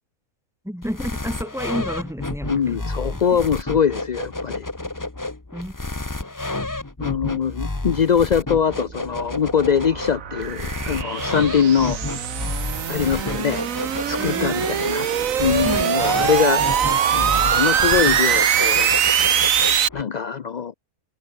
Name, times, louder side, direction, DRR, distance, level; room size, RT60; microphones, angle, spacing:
voice 1, 0.6-2.8 3.1-3.4 5.5-5.7 14.2-14.6 15.6-15.9, equal, ahead, 2.6 m, -31 dB
sound 1, 0.8-20.0, left 2 dB, 15° left, 1.1 m, -31 dB
voice 2, 2.5-4.7 7.0-12.0 12.9-13.6 14.0-15.1 15.4-16.6 17.1-18.9 19.9-20.7, left 7 dB, 55° left, 0.5 m, -22 dB
sound 2, 8.6-19.9, right 9 dB, 65° right, 1.4 m, -22 dB
omnidirectional pair, 1.6 m